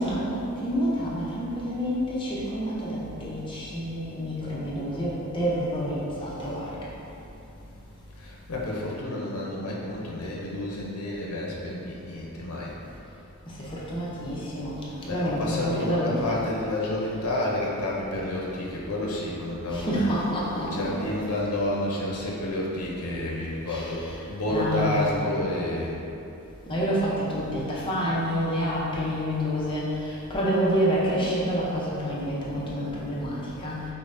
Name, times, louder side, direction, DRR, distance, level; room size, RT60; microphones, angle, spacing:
voice 1, 0.0-6.7 13.5-14.8 15.1-16.2 19.7-21.1 23.7-24.1 24.5-25.1 26.7-33.8, equal, 20° left, -7 dB, 0.6 m, -28 dB
voice 2, 8.2-12.7 15.0-20.0 20.5-26.0, left 1 dB, 75° left, -4 dB, 0.6 m, -30 dB
5.3 x 2.1 x 2.6 m, 2.9 s
head